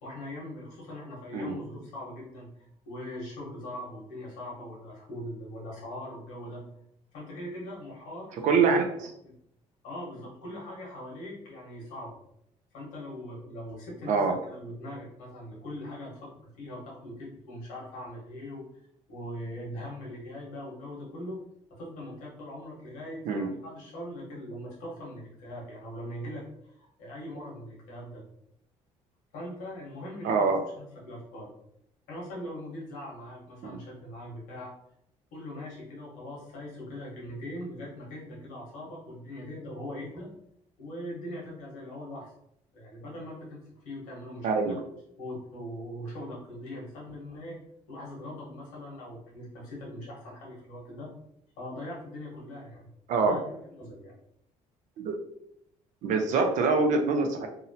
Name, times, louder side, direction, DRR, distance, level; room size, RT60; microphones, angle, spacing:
voice 1, 0.0-6.7 7.1-8.6 9.2-9.3 9.8-12.2 12.7-14.2 14.5-18.6 19.1-21.4 21.7-28.2 29.3-30.5 30.8-31.5 32.1-34.7 35.3-40.3 40.8-42.3 42.7-44.5 45.2-47.6 47.9-51.1 51.6-52.9 53.2-54.1, left 1 dB, 90° left, -4 dB, 1.2 m, -41 dB
voice 2, 8.4-8.9 14.1-14.3 23.3-23.5 30.2-30.6 33.6-33.8 44.4-44.8 53.1-53.4 55.0-55.2 56.0-57.5, right 4 dB, 70° right, 4 dB, 0.5 m, -24 dB
2.7 x 2.0 x 2.7 m, 0.74 s
supercardioid pair, 85°, 13 cm